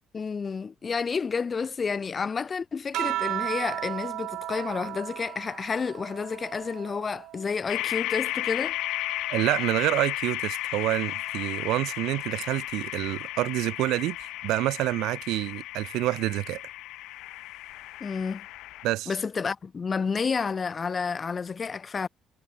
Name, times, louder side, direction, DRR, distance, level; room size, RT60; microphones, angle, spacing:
voice 1, 0.1-8.8 18.0-18.5 19.1-22.1, left 5 dB, 25° left, 1.5 m, -30 dB
sound 1, 2.9-7.7 8.2-9.9 11.1-11.6, right 15 dB, 75° right, 4.0 m, -36 dB
sound 2, 7.7-18.9, left 17 dB, 90° left, 3.0 m, -34 dB
voice 2, 9.3-16.6 18.8-19.1, right 17 dB, 90° right, 0.8 m, -27 dB
cardioid pair, 170°, 0 cm